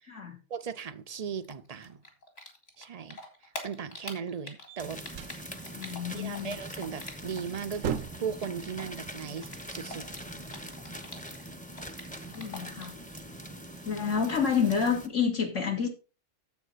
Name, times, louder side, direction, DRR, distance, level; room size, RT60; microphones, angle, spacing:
voice 1, 0.5-2.0 2.8-3.2 3.6-5.0 5.3-5.4 6.1-10.0, right 7 dB, 45° right, 0.5 m, -37 dB
Typing, 1.4-7.6 7.8-11.4 11.7-13.0, left 2 dB, 50° left, 2.6 m, -44 dB
sound 1, 4.7-5.4 7.1-7.2 7.6-8.4, right 8 dB, 80° right, 1.1 m, -36 dB
sound 2, 4.8-15.1, right 1 dB, 5° left, 0.8 m, -43 dB
voice 2, 5.7-6.6 12.3-12.9 13.8-15.9, left 6 dB, 75° left, 2.3 m, -29 dB
9.5 x 7.5 x 4.1 m
omnidirectional pair, 1.3 m